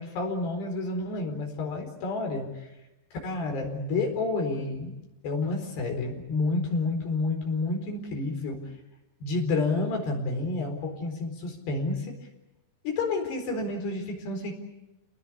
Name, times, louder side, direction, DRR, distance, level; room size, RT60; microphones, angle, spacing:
voice 1, 0.0-2.7 3.2-5.0 5.2-8.7 9.2-12.1 12.8-14.5, left 3 dB, 85° left, 2 dB, 6.6 m, -29 dB
30.0 x 20.0 x 8.6 m, 0.97 s
omnidirectional pair, 4.7 m